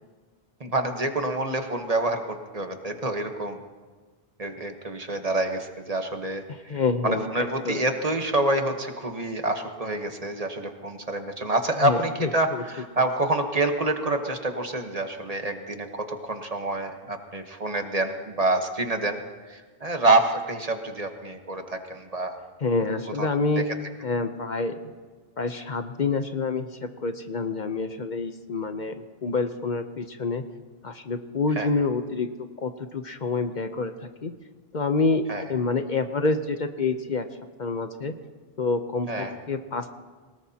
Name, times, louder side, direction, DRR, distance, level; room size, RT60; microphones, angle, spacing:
voice 1, 0.6-3.6 4.4-19.2 19.5-22.4 23.2-23.3 23.6-23.7 31.6-31.7 35.3-35.4 39.1-39.3, right 2 dB, 40° right, 5 dB, 1.2 m, -27 dB
voice 2, 6.5-7.8 11.8-12.6 22.6-23.7 24.0-24.8 25.4-30.4 30.8-32.3 32.6-34.3 34.7-37.3 37.6-38.1 38.6-39.9, left 3 dB, 50° left, 7 dB, 0.9 m, -27 dB
22.0 x 19.5 x 2.9 m, 1.4 s
omnidirectional pair, 1.0 m